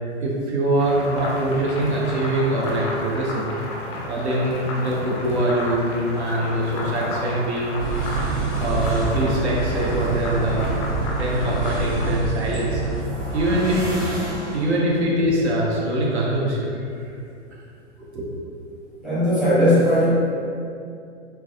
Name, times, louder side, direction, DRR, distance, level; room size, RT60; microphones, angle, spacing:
voice 1, 0.2-3.5 4.1-7.8 8.1-8.4 8.6-12.8 13.3-14.1 14.5-17.1 18.1-18.4, right 1 dB, 65° right, -4 dB, 0.6 m, -23 dB
sound 1, 0.8-12.1, left 1 dB, 25° left, 0.3 m, -32 dB
sound 2, 7.8-13.0, right 4 dB, 40° right, 1.1 m, -26 dB
sound 3, 12.4-15.1, equal, 85° right, 1.0 m, -31 dB
voice 2, 19.0-20.1, equal, ahead, -13 dB, 0.7 m, -18 dB
3.3 x 2.1 x 2.2 m, 2.5 s
figure-of-eight pair, 105°, 36 cm